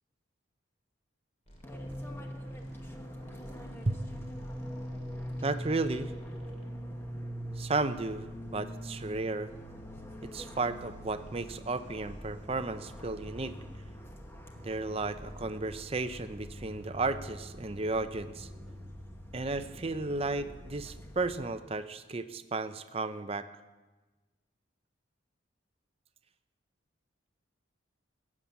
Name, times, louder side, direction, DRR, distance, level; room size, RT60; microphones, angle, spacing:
sound 1, 1.5-6.7, equal, 30° left, 2.9 m, -54 dB
Fixed-wing aircraft airplane, 1.6-21.4, equal, 10° left, 1.1 m, -43 dB
voice 1, 5.4-6.1 7.6-9.5 10.2-13.5 14.6-18.5 19.3-23.5, right 3 dB, 30° right, 11 dB, 0.6 m, -34 dB
16.5 x 7.3 x 8.5 m, 1.2 s
head